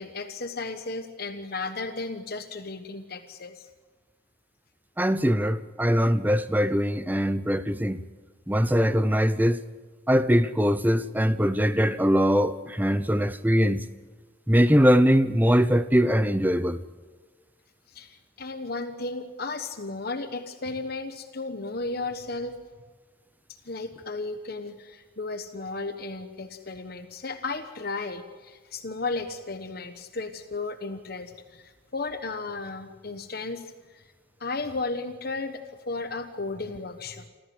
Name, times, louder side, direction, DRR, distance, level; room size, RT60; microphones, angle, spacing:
voice 1, 0.0-3.7 17.9-22.5 23.6-34.0 34.4-37.3, left 3 dB, 50° left, 1.1 m, -34 dB
voice 2, 5.0-8.0 8.5-9.6 10.1-13.8 14.5-16.8, equal, 10° right, 0.7 m, -22 dB
28.5 x 14.0 x 7.9 m
head